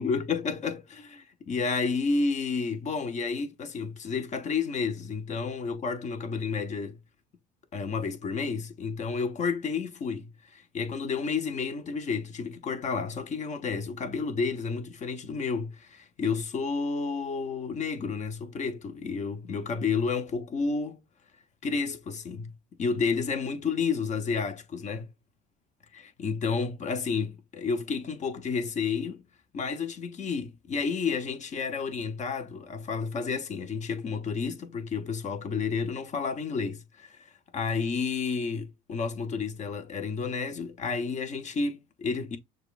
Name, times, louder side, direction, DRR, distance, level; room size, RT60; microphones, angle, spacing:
voice 1, 0.0-7.0 7.7-21.0 21.6-22.5 22.8-25.1 25.9-29.2 29.5-37.3 37.5-42.4, left 5 dB, 40° left, 1.0 m, -31 dB
6.4 x 2.4 x 2.5 m
supercardioid pair, 95°, 19 cm